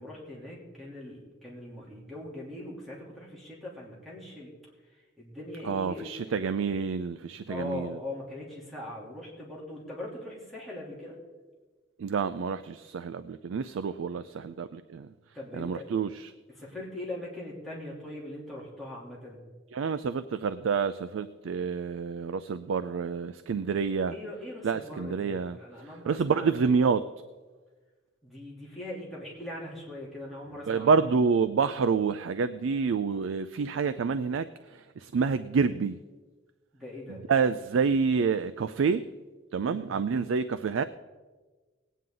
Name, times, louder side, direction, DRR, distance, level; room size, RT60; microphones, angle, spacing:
voice 1, 0.0-4.5 5.2-6.4 7.5-11.2 15.3-15.9 16.5-19.4 24.1-26.6 28.2-31.0 36.7-37.2 39.5-39.9, left 1 dB, ahead, -7 dB, 3.0 m, -41 dB
voice 2, 5.6-7.9 12.0-15.1 15.5-16.3 19.7-24.1 24.6-25.6 26.0-27.0 30.7-34.5 35.0-36.0 37.1-39.0 39.5-40.8, right 5 dB, 85° right, 12 dB, 0.4 m, -28 dB
19.0 x 9.3 x 3.8 m, 1.3 s
head